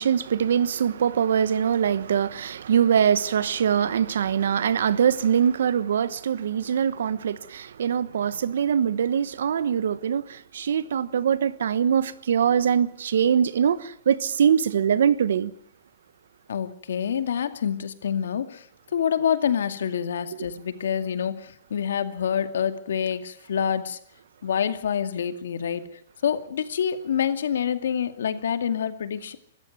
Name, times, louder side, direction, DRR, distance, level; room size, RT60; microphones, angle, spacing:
voice 1, 0.0-15.5, right 8 dB, 75° right, 1.2 m, -23 dB
voice 2, 16.5-18.7 18.9-24.0 24.4-25.8 26.2-29.4, left 8 dB, 85° left, 2.3 m, -27 dB
24.5 x 14.5 x 9.3 m
hypercardioid pair, 180°, 0 cm